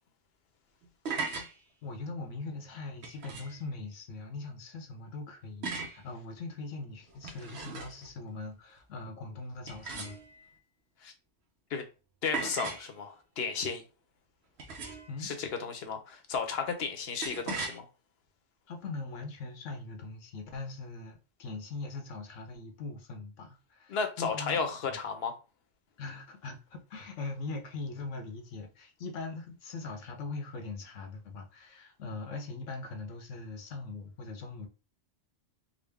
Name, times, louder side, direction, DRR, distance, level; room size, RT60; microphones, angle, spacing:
sound 1, 0.8-1.5 3.0-3.6 5.6-6.0 7.1-8.1 9.7-10.5 12.3-12.9 14.6-15.2 17.2-17.8, right 4 dB, 60° right, 0.9 m, -38 dB
voice 1, 1.8-10.2 15.1-15.3 18.7-25.0 26.0-34.7, left 3 dB, 80° left, 1.1 m, -41 dB
voice 2, 12.2-13.8 15.2-17.9 23.9-25.3, left 5 dB, 60° left, 0.9 m, -33 dB
3.8 x 2.2 x 3.4 m
omnidirectional pair, 1.3 m